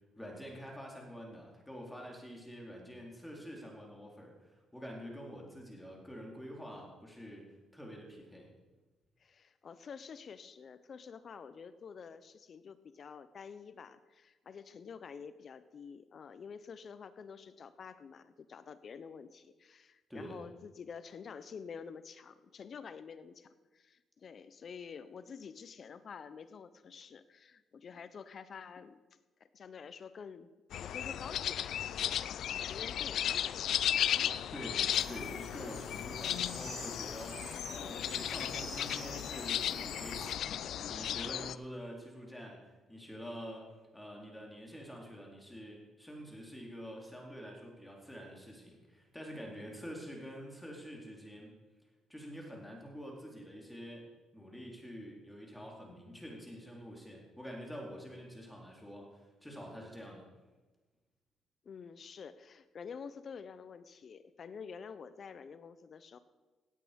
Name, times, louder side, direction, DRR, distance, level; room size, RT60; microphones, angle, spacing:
voice 1, 0.2-8.5 20.1-20.4 34.5-51.5 52.1-54.1 54.3-60.3, equal, 5° left, -1 dB, 4.0 m, -47 dB
voice 2, 9.2-30.5 30.8-33.8 34.1-34.5 37.3-37.6 61.6-66.2, left 6 dB, 50° left, 13 dB, 0.9 m, -49 dB
sound 1, 30.7-41.5, left 10 dB, 70° left, 0.4 m, -35 dB
sound 2, 34.9-40.4, right 4 dB, 45° right, 2.4 m, -50 dB
17.5 x 8.6 x 5.3 m, 1.2 s
cardioid pair, 90°, 0 cm